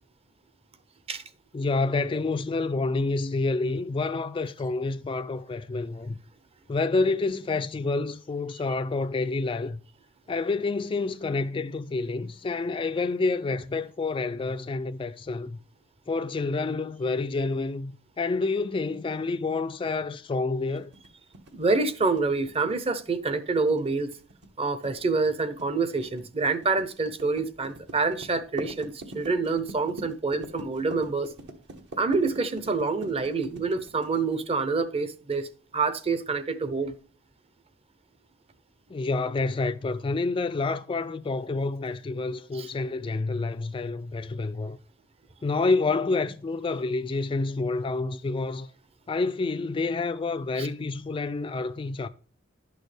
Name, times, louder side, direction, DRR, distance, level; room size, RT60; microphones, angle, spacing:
voice 1, 1.5-6.2 6.7-9.8 10.3-15.6 16.1-20.9 38.9-44.8 45.4-48.7 49.1-52.1, left 3 dB, 25° left, 0.3 m, -28 dB
sound 1, 20.7-34.5, right 1 dB, 60° right, 1.2 m, -43 dB
voice 2, 21.5-24.1 24.6-31.3 32.0-35.5 35.7-36.9 42.5-42.7 50.6-50.7, right 4 dB, 30° right, 0.7 m, -27 dB
11.0 x 6.3 x 3.3 m
head